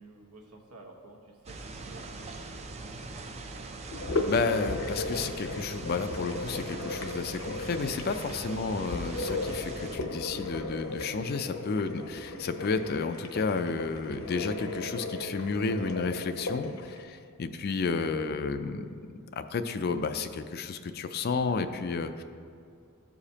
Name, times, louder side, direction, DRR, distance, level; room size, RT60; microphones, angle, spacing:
voice 1, 0.0-2.8, right 2 dB, 80° right, 1 dB, 1.1 m, -52 dB
sound 1, 1.5-10.0, right 3 dB, 30° right, 0.4 m, -42 dB
sound 2, 3.9-17.0, left 2 dB, 65° left, 0.7 m, -36 dB
voice 2, 4.3-18.9 19.3-22.2, left 4 dB, 45° left, 9 dB, 0.4 m, -31 dB
13.5 x 5.0 x 2.8 m, 2.3 s
head